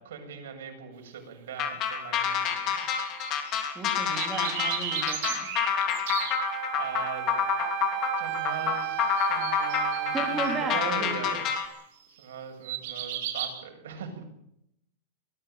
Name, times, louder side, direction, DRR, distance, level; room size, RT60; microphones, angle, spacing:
voice 1, 0.0-2.8 6.7-7.4 8.2-11.7 12.2-14.2, right 7 dB, 85° right, 4 dB, 7.3 m, -40 dB
sound 1, 1.6-11.7, left 8 dB, 30° left, 3.0 m, -28 dB
sound 2, 2.2-3.6 3.9-6.3 8.5-8.8 9.2-10.5 11.9-12.2 12.6-13.5, right 10 dB, 55° right, 5.7 m, -35 dB
voice 2, 3.4-5.5 10.1-11.4, right 2 dB, 10° right, 2 dB, 2.8 m, -35 dB
Wind instrument woodwind instrument, 6.4-10.9, right 14 dB, 35° right, 1.5 m, -33 dB
24.0 x 15.0 x 9.1 m, 0.78 s
supercardioid pair, 175°, 0 cm